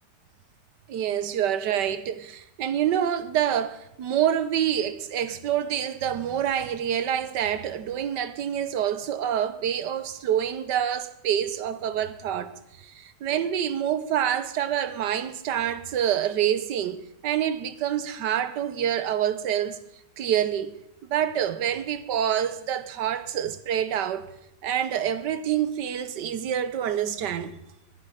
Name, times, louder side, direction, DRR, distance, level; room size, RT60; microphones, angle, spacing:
voice 1, 0.9-12.5 12.8-19.8 20.2-20.8 21.1-24.3 24.6-27.6, right 10 dB, 80° right, 1.6 m, -27 dB
20.0 x 11.5 x 5.1 m
omnidirectional pair, 1.8 m